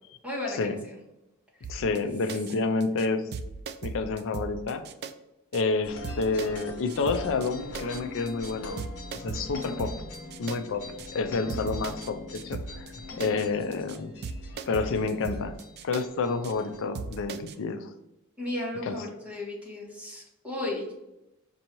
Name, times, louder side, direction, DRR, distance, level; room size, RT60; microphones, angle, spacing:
voice 1, 0.2-1.0 18.4-20.9, left 2 dB, 5° right, -6 dB, 1.5 m, -34 dB
sound 1, 1.6-2.0 2.3-2.5 2.8-3.1 3.3-5.1 5.5-5.6 6.0-6.6 6.9-7.5 7.7-8.0 8.3-8.5 8.8-10.6 11.0-11.1 11.5-12.1 12.3-12.9 13.2-13.5 13.7-14.0 14.2-16.0 16.4-16.5 16.9-17.5, right 4 dB, 45° right, 0.3 m, -37 dB
voice 2, 1.7-3.2 3.8-4.8 5.5-8.8 9.1-9.9 10.4-10.8 11.1-12.9 13.2-14.1 14.7-15.5 15.8-17.9 18.8-19.0, left 4 dB, 60° left, 9 dB, 0.4 m, -29 dB
sound 2, 5.8-16.8, left 2 dB, 85° left, 0.9 m, -42 dB
5.4 x 2.7 x 3.0 m, 0.90 s
head